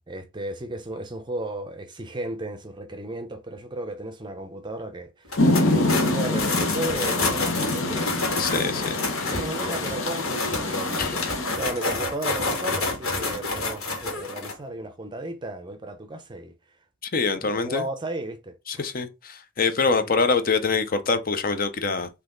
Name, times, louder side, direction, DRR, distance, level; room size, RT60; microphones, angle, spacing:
voice 1, 0.0-9.0 9.3-11.2 11.5-16.5 17.4-18.8 20.0-20.1, right 1 dB, 20° right, 0.6 m, -35 dB
sound 1, 5.3-14.5, left 3 dB, 90° left, 1.7 m, -29 dB
Rain, 5.4-11.6, left 2 dB, 70° left, 0.9 m, -26 dB
voice 2, 8.4-9.4 11.0-11.2 17.0-17.8 18.7-22.1, left 4 dB, 40° left, 0.6 m, -25 dB
4.0 x 2.8 x 3.8 m
head